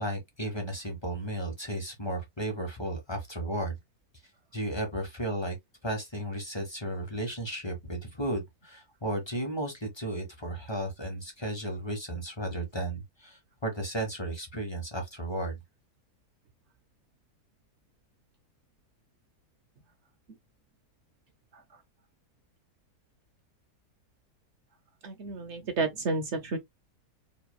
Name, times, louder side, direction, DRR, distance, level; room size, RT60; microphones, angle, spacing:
voice 1, 0.0-3.8 4.5-5.6 5.8-15.6, right 1 dB, 20° left, 1.1 m, -34 dB
voice 2, 25.0-26.6, right 3 dB, 55° right, 0.8 m, -31 dB
5.0 x 2.8 x 2.2 m
omnidirectional pair, 1.7 m